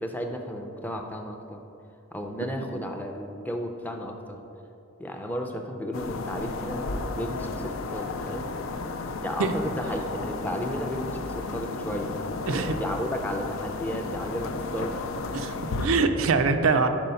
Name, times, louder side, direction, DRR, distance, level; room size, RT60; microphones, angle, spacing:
voice 1, 0.0-1.6 2.1-4.4 5.0-8.5 9.2-12.1 12.4-15.0, equal, 10° left, 3 dB, 0.4 m, -33 dB
sound 1, 5.9-15.9, left 3 dB, 75° left, 0.4 m, -33 dB
voice 2, 15.3-16.9, right 4 dB, 80° right, 7 dB, 0.4 m, -24 dB
5.3 x 4.8 x 5.5 m, 2.7 s
head